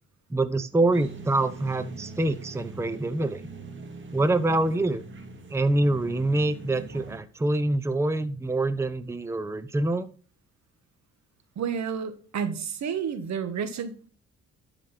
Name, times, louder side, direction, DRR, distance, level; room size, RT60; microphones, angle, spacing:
voice 1, 0.3-3.4 4.1-5.0 5.5-10.1, right 2 dB, 10° right, 0.8 m, -25 dB
sound 1, 0.9-7.2, right 3 dB, 40° right, 2.2 m, -42 dB
voice 2, 11.5-14.1, right 7 dB, 65° right, 1.7 m, -30 dB
11.5 x 5.0 x 6.0 m
cardioid pair, 90°, 30 cm